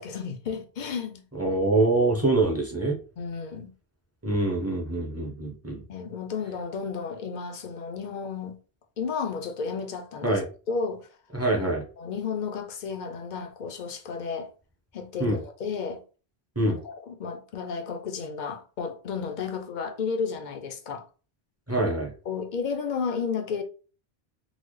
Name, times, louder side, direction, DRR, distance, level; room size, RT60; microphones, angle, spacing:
voice 1, 0.0-1.2 3.2-3.7 5.9-8.6 9.0-10.4 10.7-11.1 11.6-14.5 14.9-16.0 16.6-21.0 22.3-23.6, left 5 dB, 55° left, 0.6 m, -32 dB
voice 2, 1.3-3.0 4.2-5.8 10.2-10.5 11.3-11.8 15.2-15.4 16.6-16.8 21.7-22.1, right 2 dB, 15° right, 0.7 m, -25 dB
3.9 x 2.0 x 3.2 m
omnidirectional pair, 1.1 m